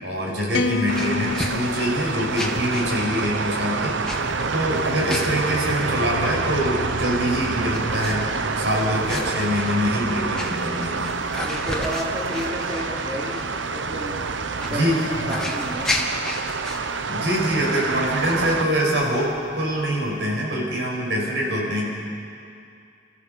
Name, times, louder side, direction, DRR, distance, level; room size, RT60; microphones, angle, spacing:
voice 1, 0.0-3.9 4.5-8.2 8.6-11.1 14.7-15.3 17.0-21.9, equal, 70° right, -2 dB, 6.0 m, -24 dB
sound 1, 0.5-2.9, left 4 dB, 70° left, 0.9 m, -28 dB
sound 2, 0.5-20.2, left 1 dB, 5° left, 1.9 m, -36 dB
sound 3, 0.9-18.6, right 4 dB, 90° right, 0.9 m, -27 dB
voice 2, 11.5-14.2 14.5-14.9 15.3-16.0, equal, 20° right, -5 dB, 3.3 m, -31 dB
29.5 x 14.5 x 7.0 m, 2.5 s
head